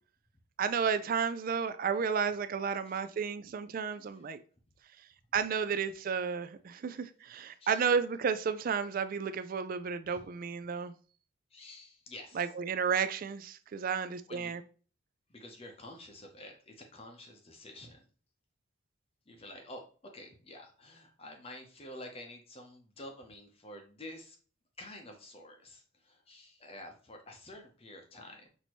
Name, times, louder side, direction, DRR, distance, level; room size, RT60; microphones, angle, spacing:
voice 1, 0.6-4.4 5.3-10.9 12.3-14.6, right 6 dB, 40° right, 0.3 m, -32 dB
voice 2, 11.5-12.5 14.3-14.5 15.3-18.1 19.3-19.8 20.1-24.4 24.8-28.5, left 1 dB, 25° left, 0.7 m, -49 dB
6.0 x 2.7 x 3.0 m
head